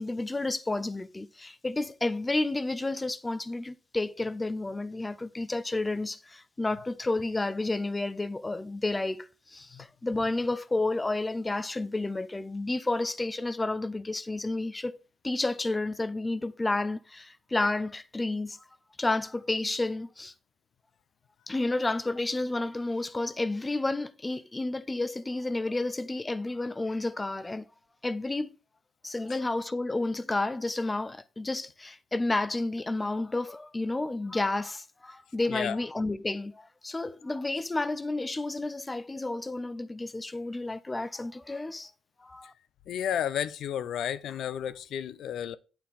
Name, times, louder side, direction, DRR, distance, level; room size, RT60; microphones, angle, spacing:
voice 1, 0.0-15.0 15.2-18.6 19.0-20.3 21.5-27.7 28.0-28.5 29.0-41.9 42.2-42.5, left 2 dB, 20° left, 0.6 m, -31 dB
voice 2, 35.5-35.8 42.9-45.6, left 9 dB, 75° left, 0.5 m, -32 dB
9.4 x 4.3 x 3.5 m
cardioid pair, 90°, 0 cm